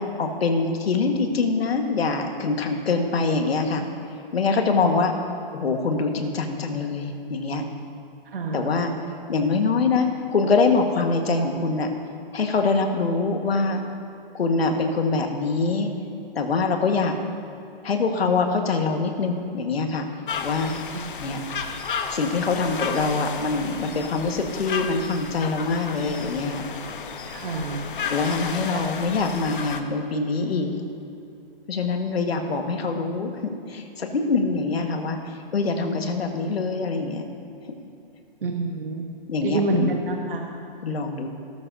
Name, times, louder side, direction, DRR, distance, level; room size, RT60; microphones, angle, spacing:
voice 1, 0.2-3.8 4.3-5.1 5.5-7.6 8.5-8.9 9.3-11.9 12.3-13.8 14.3-15.9 16.4-17.2 17.8-20.1 20.4-20.7 21.2-21.4 22.1-26.6 28.1-30.8 31.7-37.3 39.3-39.9 40.8-41.3, left 4 dB, 80° left, 4 dB, 1.8 m, -24 dB
voice 2, 8.3-8.7 20.9-21.0 27.3-27.8 38.4-39.0 39.4-40.4, right 2 dB, 65° right, 1 dB, 1.3 m, -27 dB
sound 1, 20.3-29.8, left 6 dB, 60° left, 1.0 m, -33 dB
18.5 x 12.5 x 2.8 m, 2.8 s
hypercardioid pair, 180°, 30 cm